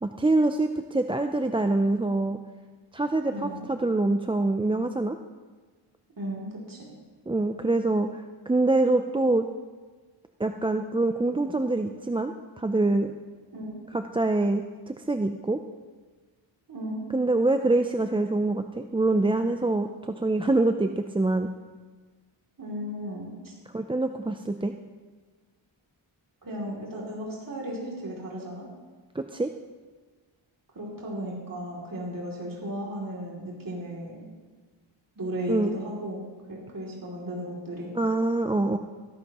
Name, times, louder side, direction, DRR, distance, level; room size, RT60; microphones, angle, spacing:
voice 1, 0.0-2.4 2.9-5.2 7.3-9.4 10.4-13.1 13.9-15.6 17.1-21.5 23.7-24.7 29.1-29.5 35.5-35.8 37.9-38.8, right 2 dB, 10° right, 7 dB, 0.4 m, -25 dB
voice 2, 3.3-3.7 6.2-6.9 13.5-13.9 16.7-17.1 22.6-23.5 26.4-28.7 30.7-34.3 35.2-36.2 36.5-37.9, equal, 45° right, -4 dB, 2.8 m, -35 dB
17.5 x 11.0 x 3.0 m, 1.4 s
cardioid pair, 70°, 47 cm